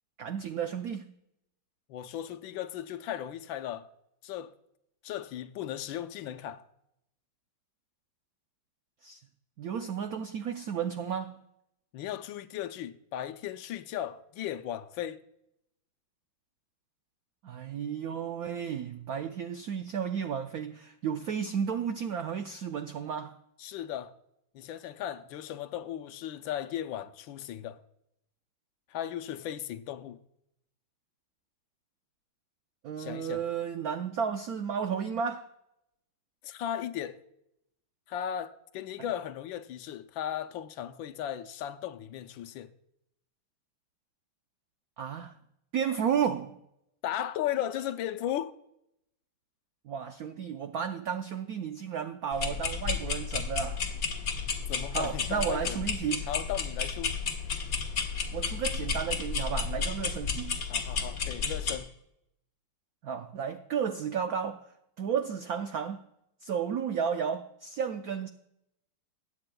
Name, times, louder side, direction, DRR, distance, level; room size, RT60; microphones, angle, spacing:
voice 1, 0.2-1.1 9.0-9.2 9.6-11.4 17.4-23.3 32.8-35.5 45.0-45.4 45.7-46.6 49.8-53.8 54.9-56.3 58.3-60.6 63.0-64.7 65.0-66.0 66.4-68.3, right 7 dB, 80° right, 0.8 m, -33 dB
voice 2, 1.9-3.9 4.2-4.5 5.0-6.6 11.9-15.2 23.6-24.1 24.5-27.8 28.9-30.2 33.0-33.4 36.4-37.2 38.1-42.7 47.0-48.5 54.7-55.8 56.3-57.2 60.7-61.9, left 11 dB, 75° left, 1.3 m, -36 dB
sound 1, 52.3-61.8, left 5 dB, 45° left, 1.6 m, -32 dB
21.0 x 8.8 x 2.2 m
omnidirectional pair, 2.3 m